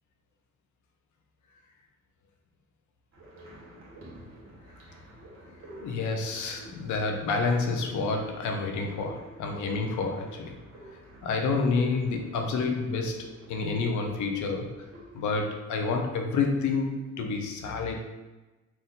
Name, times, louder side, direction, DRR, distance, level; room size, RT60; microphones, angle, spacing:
sound 1, 3.1-15.2, right 1 dB, 45° right, 1.2 m, -49 dB
voice 1, 5.8-10.6 11.2-14.8 15.1-18.0, left 4 dB, 75° left, 3 dB, 0.7 m, -29 dB
4.4 x 2.6 x 3.8 m, 1.1 s
cardioid pair, 90°, 30 cm